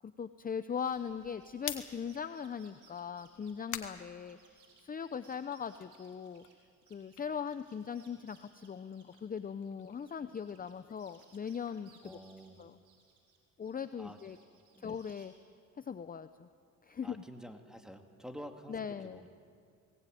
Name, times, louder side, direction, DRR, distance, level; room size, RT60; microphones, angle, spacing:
voice 1, 0.0-6.4 6.9-12.2 12.6-12.8 13.6-14.4 14.8-15.3 15.8-16.5 16.8-17.2 18.7-19.2, left 7 dB, 30° left, 11 dB, 0.7 m, -40 dB
sound 1, 0.7-7.2 7.4-10.7 11.0-13.4 13.6-15.3, right 5 dB, 80° right, 5.3 m, -65 dB
sound 2, 1.6-5.0 5.4-8.3 8.6-12.7, left 11 dB, 80° left, 1.7 m, -49 dB
voice 2, 12.0-12.6 14.0-14.2 14.7-15.0 17.0-19.3, equal, ahead, 4 dB, 2.4 m, -49 dB
20.5 x 18.5 x 9.3 m, 2.2 s
cardioid pair, 90°, 30 cm